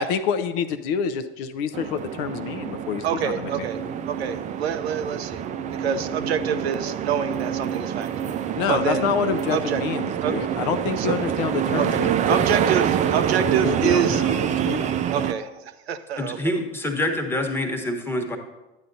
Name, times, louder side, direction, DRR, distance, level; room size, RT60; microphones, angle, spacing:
voice 1, 0.0-3.6 8.6-12.8 13.4-15.1, left 7 dB, 55° left, 10 dB, 0.6 m, -28 dB
sound 1, 1.7-15.3, right 9 dB, 25° right, 0.4 m, -26 dB
voice 2, 3.0-3.8 4.1-8.1 8.7-9.1 9.5-9.8 10.2-10.3 11.0-11.1 11.8-14.2 15.1-15.5 15.9-16.4, right 8 dB, 75° right, 10 dB, 0.6 m, -26 dB
voice 3, 16.2-18.4, left 1 dB, 5° left, 2 dB, 1.2 m, -26 dB
11.5 x 8.8 x 2.7 m, 1.0 s
hypercardioid pair, 85°, 32 cm